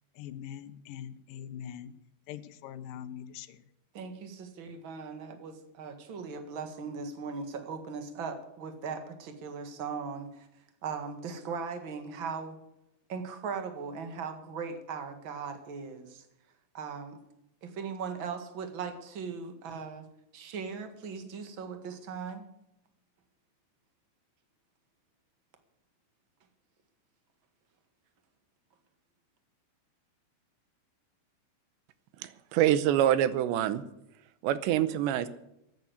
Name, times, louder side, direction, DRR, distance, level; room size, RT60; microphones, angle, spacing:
voice 1, 0.1-1.9 2.3-3.6, left 9 dB, 75° left, 11 dB, 2.0 m, -42 dB
voice 2, 3.9-10.5 10.8-12.5 13.1-16.2 16.7-17.2 17.6-20.0 20.3-22.4, right 5 dB, 50° right, 6 dB, 1.5 m, -39 dB
voice 3, 32.2-33.8 34.4-35.3, right 11 dB, 85° right, 14 dB, 3.1 m, -26 dB
14.0 x 9.6 x 8.0 m, 0.82 s
omnidirectional pair, 5.0 m